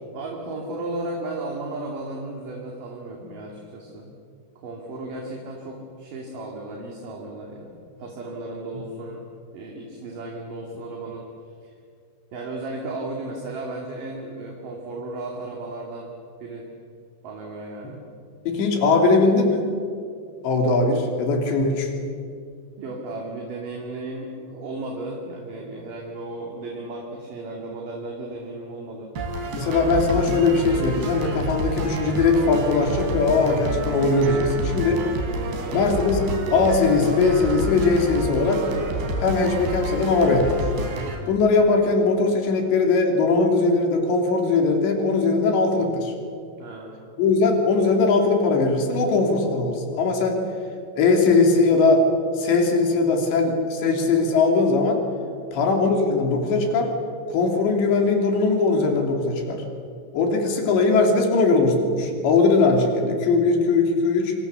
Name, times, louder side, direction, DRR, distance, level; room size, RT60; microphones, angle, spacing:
voice 1, 0.1-4.1 4.6-9.2 9.5-11.3 11.6-11.7 12.3-16.1 16.4-16.7 17.2-18.0 22.8-29.1 35.5-36.0 46.6-47.0 55.2-55.7, right 2 dB, 50° right, -1 dB, 4.0 m, -35 dB
voice 2, 18.5-19.7 20.4-21.9 29.5-35.1 35.7-38.7 39.2-40.6 41.3-46.1 47.2-50.5 51.0-52.0 52.4-55.0 55.5-56.9 57.3-59.6 60.1-64.3, left 3 dB, 75° left, 3 dB, 5.3 m, -20 dB
sound 1, 29.2-41.2, right 2 dB, 70° right, 5.2 m, -29 dB
26.0 x 26.0 x 7.2 m, 2.3 s
omnidirectional pair, 5.1 m